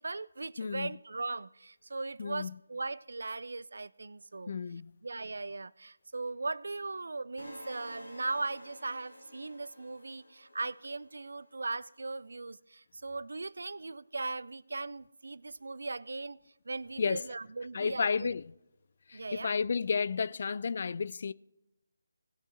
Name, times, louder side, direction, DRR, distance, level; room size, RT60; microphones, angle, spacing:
voice 1, 0.0-4.5 5.0-16.4 16.7-18.3 19.1-19.5, right 3 dB, 60° right, 0.4 m, -38 dB
voice 2, 0.6-0.9 2.2-2.6 4.5-4.9 17.0-17.2 17.7-18.4 19.1-21.3, left 5 dB, 40° left, 0.3 m, -32 dB
sound 1, 7.4-11.4, left 1 dB, 75° left, 2.5 m, -51 dB
18.0 x 6.2 x 4.3 m
figure-of-eight pair, 155°, 0 cm